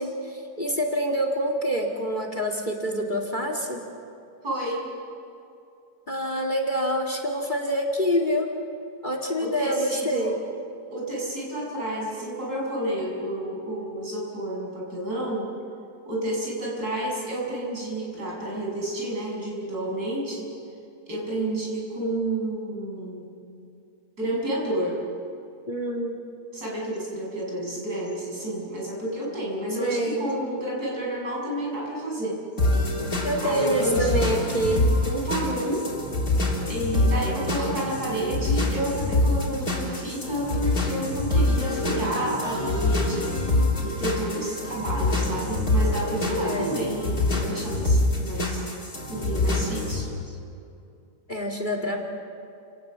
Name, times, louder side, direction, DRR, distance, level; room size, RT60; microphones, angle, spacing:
voice 1, 0.0-3.8 6.1-8.5 9.0-10.4 25.7-26.2 29.8-30.3 33.2-34.9 46.4-46.7 51.3-52.0, equal, 30° left, 3 dB, 2.3 m, -26 dB
voice 2, 4.4-4.8 9.4-10.3 10.9-15.5 16.1-20.5 21.1-23.3 24.2-25.0 26.5-32.4 33.4-34.3 35.0-35.9 36.6-43.4 43.8-48.6 49.1-50.1, right 1 dB, 70° right, -4 dB, 7.6 m, -30 dB
sound 1, 32.6-50.0, left 2 dB, 60° left, 4.2 m, -25 dB
29.0 x 18.0 x 7.5 m, 2.6 s
omnidirectional pair, 1.7 m